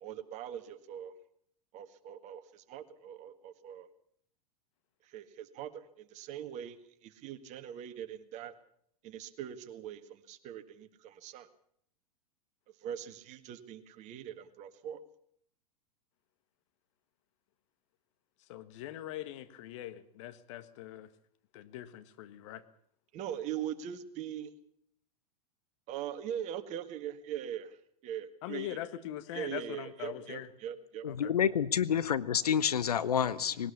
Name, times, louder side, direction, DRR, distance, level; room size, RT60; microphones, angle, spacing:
voice 1, 0.0-1.1 1.7-3.9 5.1-6.8 7.0-8.5 9.0-11.5 12.8-15.0 23.1-24.5 25.9-27.8 28.0-28.8 29.3-31.3, right 10 dB, 35° right, 10 dB, 1.7 m, -41 dB
voice 2, 18.5-21.1 21.5-22.6 28.4-30.5 31.1-31.3, left 13 dB, 50° left, 11 dB, 1.5 m, -42 dB
voice 3, 31.0-33.7, left 8 dB, 70° left, 14 dB, 1.0 m, -29 dB
20.0 x 18.5 x 7.1 m, 0.65 s
figure-of-eight pair, 95°, 20 cm